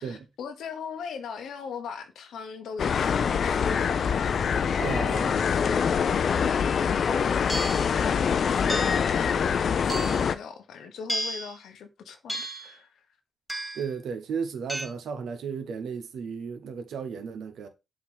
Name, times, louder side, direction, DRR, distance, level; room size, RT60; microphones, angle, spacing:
voice 1, 0.0-13.0, left 6 dB, 85° left, 0.9 m, -40 dB
sound 1, 2.8-10.4, left 7 dB, 70° left, 0.5 m, -25 dB
voice 2, 4.8-5.4 13.7-17.7, right 6 dB, 85° right, 0.9 m, -34 dB
sound 2, 7.5-7.9 8.7-9.1 9.9-10.4 11.1-11.5 12.3-12.7 13.5-13.9 14.7-14.9, right 1 dB, 5° right, 2.2 m, -33 dB
7.1 x 2.9 x 5.4 m
supercardioid pair, 55°, 0 cm